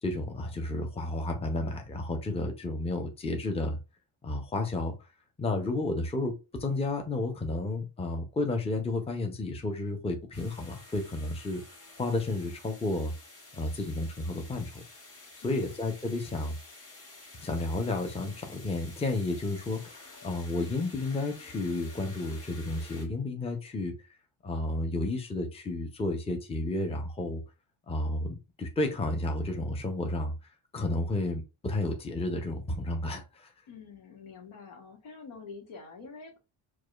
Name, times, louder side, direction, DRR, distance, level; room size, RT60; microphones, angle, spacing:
voice 1, 0.0-3.8 4.2-5.0 5.4-11.6 12.0-13.1 13.5-14.8 15.4-16.6 17.4-23.9 24.4-27.4 27.9-30.3 30.7-33.5, left 2 dB, 10° left, 0.6 m, -32 dB
sound 1, 10.3-23.1, left 3 dB, 30° left, 1.5 m, -51 dB
voice 2, 15.4-15.7 33.7-36.4, left 4 dB, 75° left, 1.3 m, -47 dB
4.7 x 2.4 x 2.4 m
cardioid pair, 105°, 49 cm